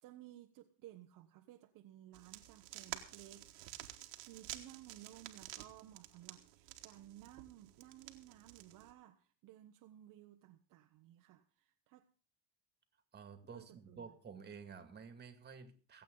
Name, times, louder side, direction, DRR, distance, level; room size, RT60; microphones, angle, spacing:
voice 1, 0.0-3.5 4.3-12.1 13.5-14.1, right 13 dB, 60° right, 1.1 m, -57 dB
sound 1, 2.1-8.9, right 15 dB, 85° right, 1.7 m, -51 dB
voice 2, 13.1-16.0, right 6 dB, 25° right, 2.2 m, -52 dB
24.0 x 8.4 x 3.9 m
supercardioid pair, 105°, 36 cm